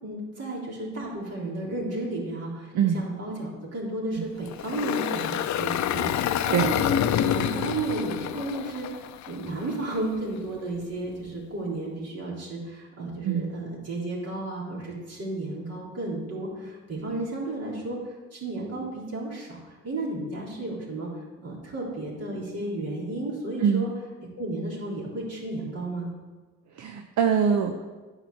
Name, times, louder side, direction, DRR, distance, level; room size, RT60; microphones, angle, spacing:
voice 1, 0.0-18.0 18.3-21.1 21.4-23.9 24.4-26.1, right 2 dB, 55° right, -5 dB, 3.8 m, -33 dB
Engine, 4.5-9.7, left 10 dB, 70° left, 0.6 m, -27 dB
voice 2, 26.7-27.8, right 7 dB, 70° right, 6 dB, 0.8 m, -23 dB
9.9 x 4.9 x 7.8 m, 1.3 s
cardioid pair, 90°, 30 cm